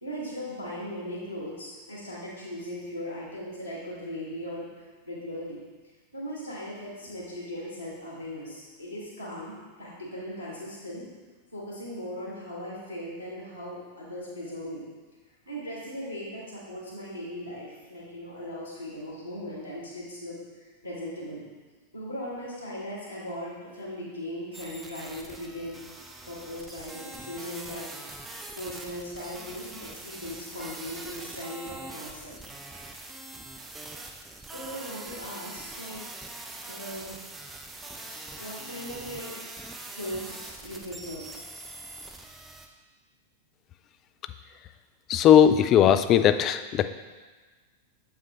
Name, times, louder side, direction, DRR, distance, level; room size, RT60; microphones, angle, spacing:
voice 1, 0.0-4.7 5.0-5.6 6.1-11.1 11.5-14.8 15.4-21.4 21.9-25.8 26.3-27.9 28.6-32.4 34.5-36.0 36.7-37.2 38.4-39.4 39.9-41.3, equal, 90° right, -5 dB, 1.5 m, -38 dB
sound 1, 24.5-42.7, right 2 dB, 10° right, 0.6 m, -43 dB
voice 2, 45.1-46.9, left 9 dB, 35° left, 11 dB, 0.3 m, -18 dB
7.2 x 5.6 x 3.0 m, 1.3 s
figure-of-eight pair, 90°, 0 cm